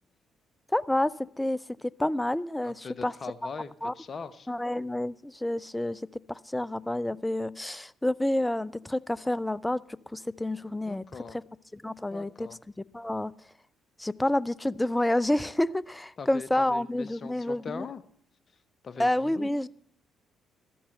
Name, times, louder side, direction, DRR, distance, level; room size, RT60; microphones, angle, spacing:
voice 1, 0.7-1.6 2.0-3.1 3.8-3.9 4.5-6.0 6.3-11.0 11.7-12.5 12.9-13.3 14.0-17.9 19.0-19.7, left 1 dB, 10° left, 20 dB, 0.5 m, -29 dB
voice 2, 2.6-4.5 10.8-11.4 12.1-12.6 16.2-18.0 18.8-19.5, left 5 dB, 40° left, 15 dB, 0.9 m, -41 dB
13.5 x 8.6 x 7.9 m, 0.65 s
figure-of-eight pair, 45°, 0 cm